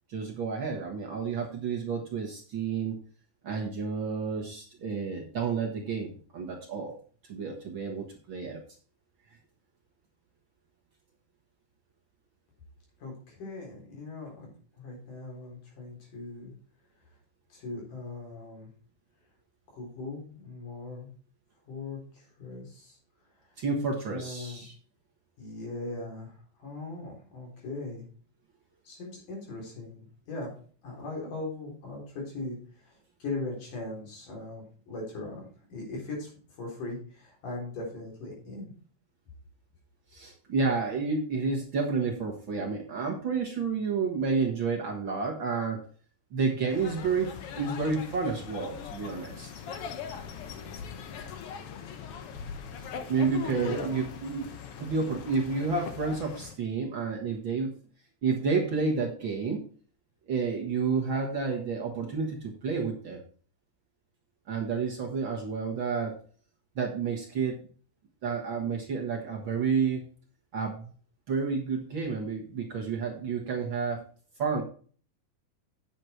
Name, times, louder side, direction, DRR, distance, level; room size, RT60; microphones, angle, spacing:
voice 1, 0.1-3.0 3.4-6.9 7.3-8.6 23.6-24.7 40.1-45.8 46.3-49.5 53.1-54.4 54.8-57.7 58.2-59.6 60.3-63.2 64.5-66.1 66.8-67.6 68.2-70.0 70.5-70.9 71.3-74.0 74.4-74.6, right 5 dB, 50° right, 1 dB, 1.7 m, -30 dB
voice 2, 13.0-14.5 14.8-16.5 17.5-18.7 19.7-21.1 21.7-23.0 24.1-24.7 25.4-28.1 28.8-30.5 30.8-38.7 53.5-53.9, left 2 dB, 85° left, -2 dB, 5.6 m, -39 dB
sound 1, 46.7-56.5, left 7 dB, 65° left, 1.6 m, -41 dB
9.5 x 7.2 x 4.5 m, 0.42 s
omnidirectional pair, 3.6 m